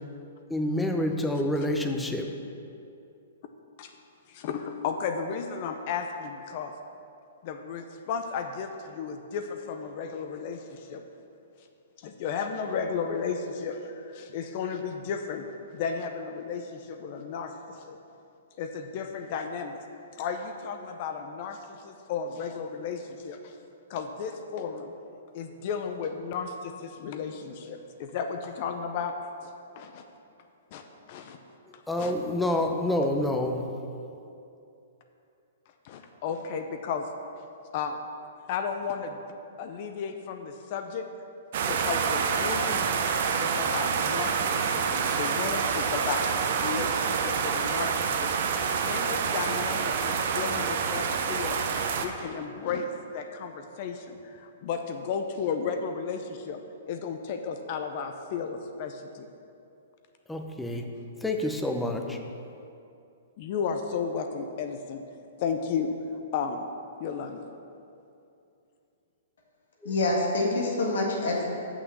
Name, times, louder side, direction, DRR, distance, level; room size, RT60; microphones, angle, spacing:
voice 1, 0.5-2.3 31.9-33.7 60.3-60.9 61.2-62.2 69.8-69.9, left 1 dB, 5° left, 3 dB, 0.6 m, -28 dB
voice 2, 4.3-6.7 7.4-11.0 12.0-15.4 15.7-18.0 18.6-19.8 20.2-23.5 23.9-24.9 25.3-29.1 29.4-30.0 30.7-30.8 31.1-31.4 31.7-32.1 35.8-37.1 37.7-38.0 38.5-39.2 39.6-41.1 41.7-42.9 43.4-46.3 46.6-48.3 48.6-51.6 52.0-56.6 56.9-59.3 63.4-65.0 65.4-65.9 66.3-66.7 67.0-67.4, left 6 dB, 45° left, 6 dB, 0.6 m, -34 dB
sound 1, 41.5-52.1, right 6 dB, 55° right, 0.7 m, -27 dB
voice 3, 69.8-71.4, left 2 dB, 75° left, -2 dB, 1.7 m, -26 dB
6.2 x 6.0 x 6.9 m, 2.6 s
hypercardioid pair, 140°, 0 cm